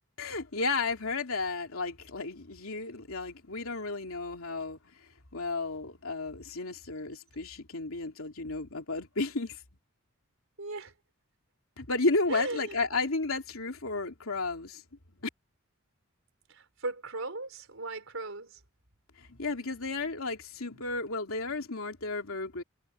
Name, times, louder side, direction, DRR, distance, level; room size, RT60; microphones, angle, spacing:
voice 1, 0.2-9.6 11.8-14.8 15.2-15.3 19.2-22.6, left 3 dB, 80° left, 2.8 m, -33 dB
voice 2, 10.6-10.9 12.3-12.8 16.5-18.6 19.6-19.9 20.7-20.8, right 2 dB, 70° right, 5.0 m, -38 dB
head